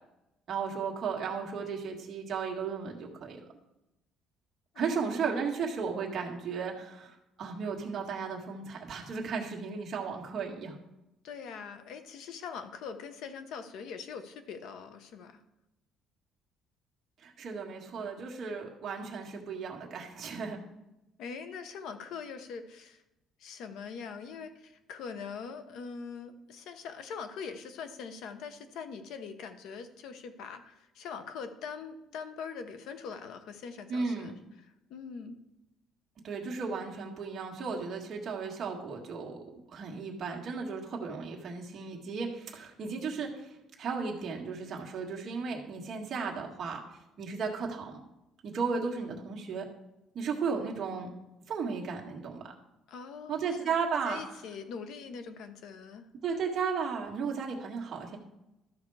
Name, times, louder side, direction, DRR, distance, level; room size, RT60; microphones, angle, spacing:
voice 1, 0.5-3.4 4.7-10.8 17.2-20.6 33.9-34.3 36.2-39.4 39.7-46.8 47.2-48.0 48.4-49.7 50.1-51.1 51.5-52.4 53.3-54.2 56.2-58.2, right 5 dB, 35° right, 0 dB, 1.7 m, -35 dB
voice 2, 4.7-5.5 11.2-15.4 21.2-23.0 23.4-34.4 34.9-35.4 52.9-53.7 54.0-56.0, left 6 dB, 60° left, 9 dB, 1.0 m, -42 dB
13.0 x 5.9 x 4.8 m, 0.92 s
cardioid pair, 170°, 0 cm